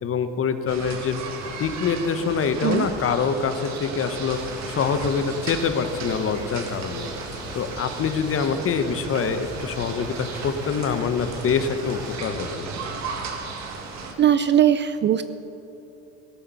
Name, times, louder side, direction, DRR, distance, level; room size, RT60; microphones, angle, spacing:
voice 1, 0.0-1.2 1.6-7.1 7.5-12.7, left 6 dB, 35° left, 9 dB, 1.1 m, -25 dB
sound 1, 0.7-14.1, right 4 dB, 45° right, 1.8 m, -35 dB
sound 2, 4.3-12.2, left 1 dB, 10° right, 3.8 m, -39 dB
voice 2, 14.2-15.2, right 10 dB, 30° right, 13 dB, 0.4 m, -19 dB
18.5 x 8.7 x 5.6 m, 2.9 s
hypercardioid pair, 80°, 37 cm